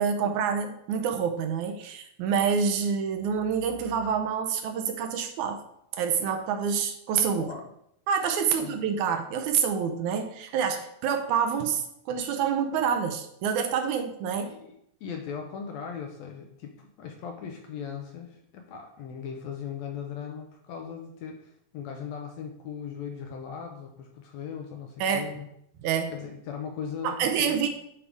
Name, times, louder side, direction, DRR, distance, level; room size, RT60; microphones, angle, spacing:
voice 1, 0.0-5.6 5.9-7.5 8.1-14.6 25.0-25.3 25.8-26.1 27.0-27.7, right 7 dB, 75° right, 6 dB, 2.0 m, -27 dB
voice 2, 14.4-25.5 26.1-27.7, left 7 dB, 75° left, 3 dB, 1.7 m, -39 dB
9.8 x 4.7 x 3.5 m, 0.74 s
omnidirectional pair, 3.8 m